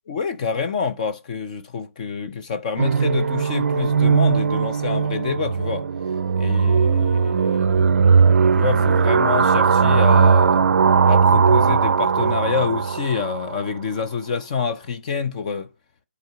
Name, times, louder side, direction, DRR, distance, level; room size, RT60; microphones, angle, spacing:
voice 1, 0.1-5.9 6.4-7.9 8.6-10.7 11.1-15.7, left 6 dB, 30° left, 0.6 m, -27 dB
sound 1, 2.8-13.6, right 5 dB, 70° right, 0.4 m, -18 dB
8.0 x 4.0 x 5.7 m
hypercardioid pair, 155°, 8 cm